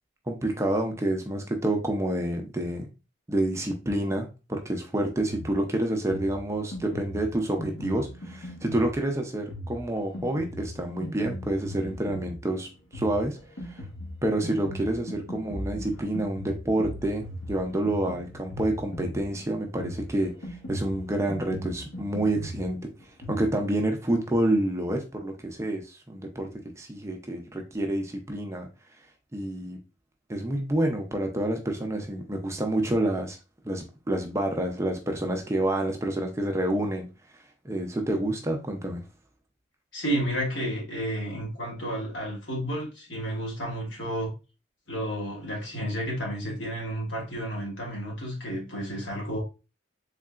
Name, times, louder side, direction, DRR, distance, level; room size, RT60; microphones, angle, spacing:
voice 1, 0.3-2.9 3.3-13.4 13.7-13.8 14.2-22.8 23.3-26.5 26.8-28.7 29.3-29.8 30.3-33.4 33.6-37.1 37.6-39.0, right 1 dB, 15° right, 0.4 m, -28 dB
Drum kit, 5.3-23.5, equal, 85° left, 1.3 m, -39 dB
voice 2, 39.9-44.3 44.9-49.4, right 1 dB, 70° left, 1.4 m, -31 dB
3.7 x 3.2 x 2.3 m
head